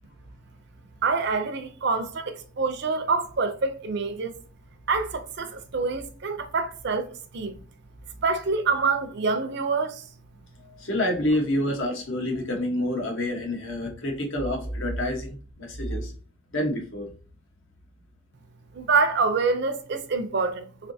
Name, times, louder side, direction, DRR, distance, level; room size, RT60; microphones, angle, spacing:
voice 1, 1.0-4.4 4.9-7.6 8.2-10.0 18.7-20.9, right 4 dB, 55° right, 0.5 m, -26 dB
voice 2, 10.8-16.1 16.5-17.1, left 1 dB, 75° left, 1.1 m, -28 dB
3.7 x 3.3 x 2.7 m
head